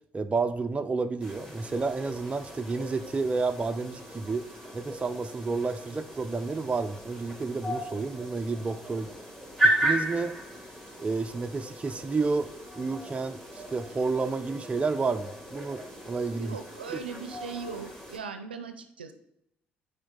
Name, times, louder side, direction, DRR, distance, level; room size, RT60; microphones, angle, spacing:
voice 1, 0.1-4.4 4.7-9.1 9.6-10.4 11.0-16.6 16.9-17.0, right 4 dB, 25° right, 8 dB, 0.5 m, -30 dB
sound 1, 1.2-18.2, right 1 dB, 10° left, 2.3 m, -35 dB
voice 2, 16.4-19.1, right 5 dB, 90° right, 8 dB, 0.5 m, -39 dB
9.2 x 3.7 x 3.9 m, 0.79 s
hypercardioid pair, 50°, 5 cm